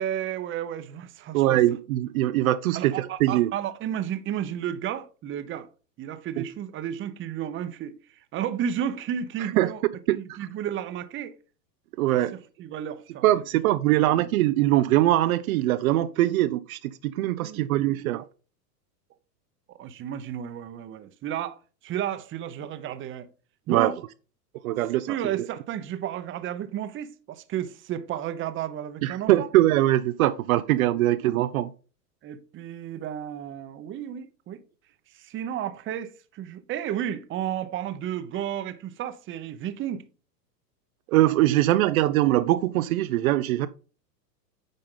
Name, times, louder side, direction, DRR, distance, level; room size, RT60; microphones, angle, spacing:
voice 1, 0.0-1.6 2.7-5.7 6.0-9.8 10.1-11.3 12.6-13.3 14.0-14.3 16.3-16.4 17.4-18.0 19.7-23.3 23.7-24.0 25.1-29.5 30.9-31.1 32.2-34.6 35.1-40.0, right 10 dB, 25° right, 0.8 m, -32 dB
voice 2, 1.3-3.5 6.4-6.5 9.6-9.7 10.1-10.4 12.0-12.3 13.2-18.2 23.7-23.9 24.6-25.3 29.0-31.7 41.1-43.7, right 15 dB, 55° right, 0.7 m, -22 dB
9.0 x 5.3 x 3.8 m
hypercardioid pair, 110°, 50 cm